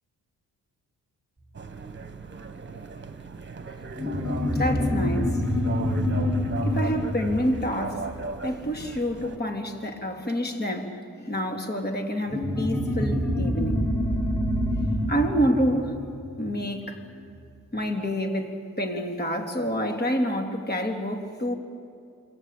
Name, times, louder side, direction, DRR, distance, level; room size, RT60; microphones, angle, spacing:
sound 1, 1.5-9.4, right 3 dB, 30° right, 1.7 m, -38 dB
voice 1, 3.7-5.4 6.6-8.1 8.4-13.9 14.7-15.9 16.4-17.0 17.7-21.5, equal, 25° left, 3 dB, 3.6 m, -28 dB
sound 2, 3.9-8.9 12.3-17.2, left 1 dB, 5° left, 3.7 m, -27 dB
27.5 x 24.0 x 8.6 m, 2.5 s
cardioid pair, 105°, 38 cm